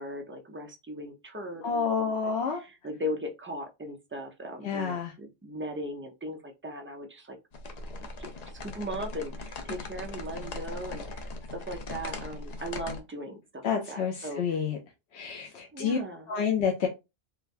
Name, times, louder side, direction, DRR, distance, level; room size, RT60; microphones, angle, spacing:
voice 1, 0.0-7.4 8.2-8.3 8.6-14.6 15.7-16.3, equal, 20° right, 3 dB, 0.4 m, -38 dB
voice 2, 1.6-2.6 4.6-5.1 13.6-14.8 15.1-16.0 16.3-16.9, left 6 dB, 90° left, 2 dB, 0.9 m, -29 dB
sound 1, 7.5-13.0, left 2 dB, 50° left, 0.5 m, -39 dB
3.8 x 2.2 x 2.5 m, 0.24 s
omnidirectional pair, 1.1 m